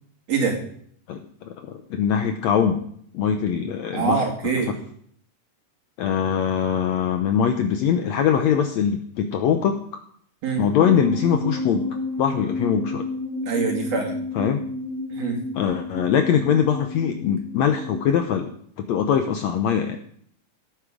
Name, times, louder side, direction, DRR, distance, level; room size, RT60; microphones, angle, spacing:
voice 1, 0.3-0.6 3.9-4.7 10.4-10.6 13.5-14.2 15.1-15.4, right 5 dB, 50° right, 0 dB, 3.4 m, -24 dB
voice 2, 1.5-2.8 3.1-4.2 6.0-9.8 10.6-11.8 12.2-13.1 14.4-14.6 15.5-18.5 18.8-20.0, left 8 dB, 70° left, 6 dB, 1.7 m, -22 dB
sound 1, 10.8-18.2, left 2 dB, 30° left, 5.6 m, -31 dB
17.5 x 8.7 x 5.1 m, 0.62 s
omnidirectional pair, 3.8 m